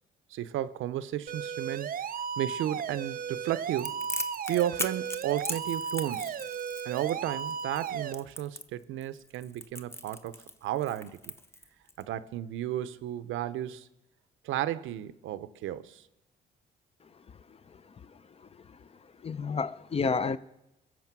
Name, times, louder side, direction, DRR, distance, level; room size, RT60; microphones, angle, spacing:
voice 1, 0.3-1.9 2.4-4.0 4.5-6.4 6.8-11.3 12.0-13.9 14.4-16.0, right 12 dB, 85° right, 0.6 m, -33 dB
sound 1, 1.3-8.1, right 7 dB, 45° right, 0.5 m, -35 dB
Crackle, 3.8-12.0, left 1 dB, 15° left, 0.9 m, -39 dB
voice 2, 17.5-17.8 18.1-18.9 19.2-20.4, left 5 dB, 30° left, 0.5 m, -32 dB
21.0 x 7.2 x 6.0 m
cardioid pair, 90°, 20 cm